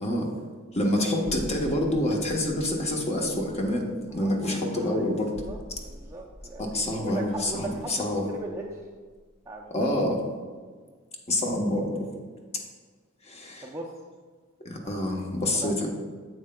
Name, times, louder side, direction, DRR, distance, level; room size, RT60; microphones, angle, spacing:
voice 1, 0.7-5.3 5.7-5.8 6.6-8.3 9.7-10.2 11.3-11.9 13.2-13.7 14.6-15.9, left 1 dB, 30° left, 0 dB, 0.9 m, -27 dB
sound 1, 1.2-9.6 9.9-10.0, equal, 55° left, 1.6 m, -45 dB
voice 2, 4.2-5.1 5.4-5.6 5.8-8.8 9.5-9.9 13.6-13.9 15.5-15.9, right 2 dB, 15° right, -4 dB, 0.5 m, -39 dB
9.5 x 7.5 x 2.2 m, 1.5 s
head